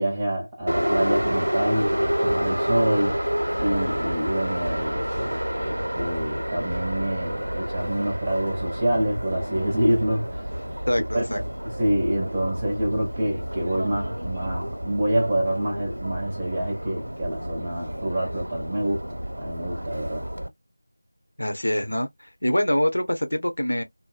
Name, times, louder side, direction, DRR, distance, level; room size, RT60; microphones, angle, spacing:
voice 1, 0.0-3.3 3.6-10.5 11.1-11.4 11.8-20.3, right 1 dB, 15° right, 0.6 m, -27 dB
Subway metro underground, 0.7-20.5, equal, 80° right, 0.8 m, -29 dB
voice 2, 10.9-11.4 21.4-22.1 22.4-23.8, left 1 dB, 75° left, 0.8 m, -24 dB
2.6 x 2.1 x 2.3 m
figure-of-eight pair, 175°, 0 cm